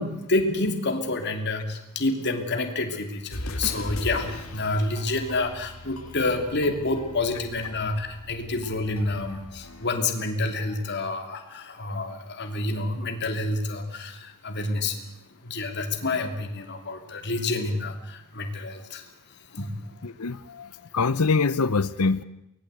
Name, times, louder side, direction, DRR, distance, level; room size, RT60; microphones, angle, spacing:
voice 1, 0.0-15.1 15.4-19.1 19.5-19.7, left 2 dB, 50° left, 5 dB, 2.9 m, -28 dB
sound 1, 3.3-9.9, left 1 dB, 65° left, 2.9 m, -39 dB
voice 2, 20.0-22.2, left 4 dB, 85° left, 15 dB, 0.8 m, -24 dB
24.5 x 19.0 x 8.1 m, 0.85 s
head